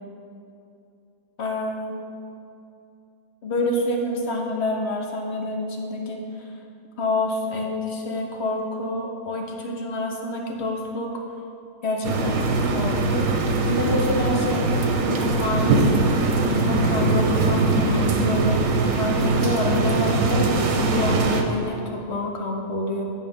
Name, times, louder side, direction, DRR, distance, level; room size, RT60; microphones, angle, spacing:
voice 1, 1.4-2.0 3.4-6.5 7.0-11.1 11.8-13.3 13.6-14.7 15.0-16.1 16.5-18.6 19.0-23.0, left 2 dB, 50° left, 1 dB, 1.2 m, -27 dB
sound 1, 12.0-21.4, right 3 dB, 65° right, 1.1 m, -21 dB
9.0 x 5.0 x 5.3 m, 2.6 s
omnidirectional pair, 1.5 m